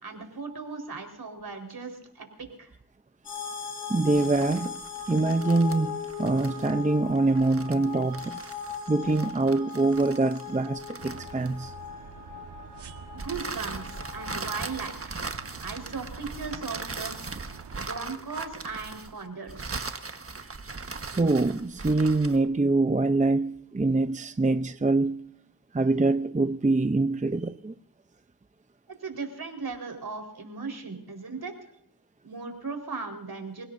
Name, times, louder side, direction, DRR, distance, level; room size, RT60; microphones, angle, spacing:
voice 1, 0.0-2.7 13.1-17.1 17.8-19.8 29.0-31.5 32.2-33.6, right 4 dB, 65° right, 4.6 m, -37 dB
sound 1, 3.2-14.7, left 7 dB, 80° left, 4.6 m, -39 dB
voice 2, 3.9-4.8 5.1-8.4 8.9-11.7 20.6-20.7 21.2-25.2 25.7-27.7, right 2 dB, 20° right, 0.7 m, -24 dB
sound 2, 4.0-11.8 13.2-22.5, right 3 dB, 35° right, 1.4 m, -39 dB
sound 3, 11.0-17.9, right 6 dB, 90° right, 1.5 m, -47 dB
28.0 x 17.0 x 2.7 m
cardioid pair, 65°, 40 cm